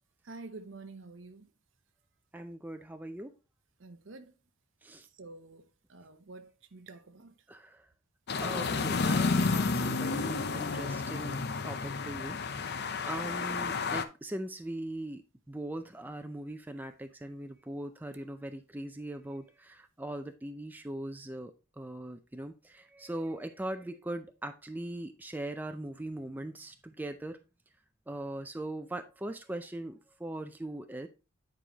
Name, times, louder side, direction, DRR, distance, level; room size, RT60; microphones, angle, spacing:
voice 1, 0.2-1.5 3.8-4.3 5.1-7.3, right 3 dB, 65° right, 0.8 m, -48 dB
voice 2, 2.3-3.4 4.8-5.1 7.5-7.9 8.4-27.4 28.1-31.1, right 1 dB, 10° right, 0.4 m, -40 dB
sound 1, 8.3-14.0, left 4 dB, 50° left, 0.6 m, -31 dB
9.2 x 4.8 x 2.9 m
head